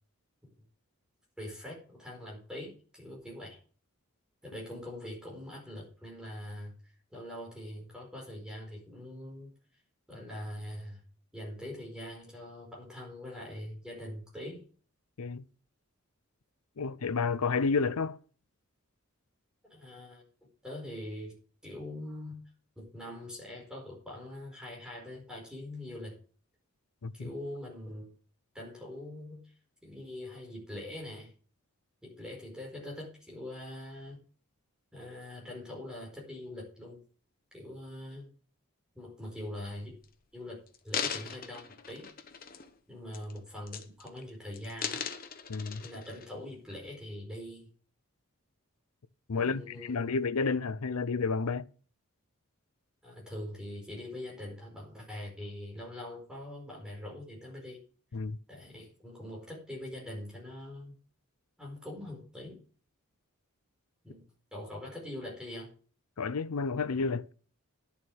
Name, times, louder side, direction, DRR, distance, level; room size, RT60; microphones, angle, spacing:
voice 1, 1.4-3.6 4.5-9.5 10.1-11.0 11.3-14.6 19.7-21.4 21.6-22.4 22.8-26.2 27.1-28.1 28.5-29.5 29.8-31.3 32.0-34.2 34.9-37.0 37.5-38.3 38.9-39.9 40.3-40.6 40.8-42.1 42.9-45.1 45.8-47.7 49.3-50.1 53.0-57.8 58.5-61.0 61.6-62.6 64.0-64.2 64.5-65.7, left 1 dB, 5° right, 4.7 m, -43 dB
voice 2, 16.8-18.2 27.0-27.3 45.5-45.8 49.3-51.7 58.1-58.4 66.2-67.3, left 4 dB, 80° left, 0.6 m, -30 dB
sound 1, 39.9-40.0 40.7-42.8 43.1-43.4 43.7-44.2 44.5-46.3 46.8-46.9, left 7 dB, 40° left, 1.0 m, -38 dB
11.0 x 7.2 x 6.2 m
head